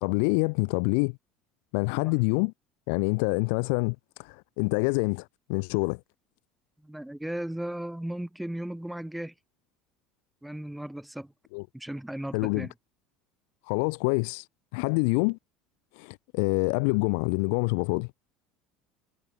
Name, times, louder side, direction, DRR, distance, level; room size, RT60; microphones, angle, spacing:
voice 1, 0.0-1.2 1.7-2.5 2.9-6.0 11.5-11.6 12.3-12.7 13.7-14.5 14.7-15.4 16.0-18.1, left 36 dB, 75° left, 0.4 m, -26 dB
voice 2, 6.8-9.3 10.4-11.3 11.7-12.7, right 1 dB, 5° right, 7.0 m, -36 dB
supercardioid pair, 120°, 0 cm